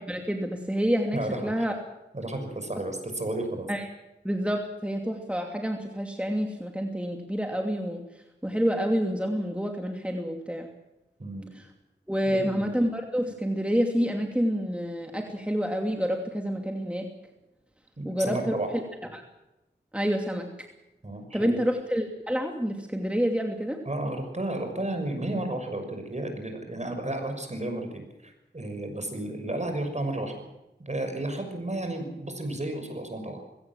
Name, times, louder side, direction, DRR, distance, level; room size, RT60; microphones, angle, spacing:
voice 1, 0.0-1.7 3.7-3.9 4.2-10.7 11.5-11.7 12.1-17.1 18.0-18.8 19.1-19.2 19.9-20.5 21.3-23.8, equal, 5° right, 3 dB, 2.8 m, -28 dB
voice 2, 1.1-1.7 2.1-3.7 11.2-11.5 12.3-12.7 18.0-18.7 21.0-21.6 23.8-30.3 30.9-33.4, right 1 dB, 40° right, 6 dB, 6.2 m, -32 dB
20.5 x 17.5 x 7.6 m, 0.98 s
cardioid pair, 40°, 19 cm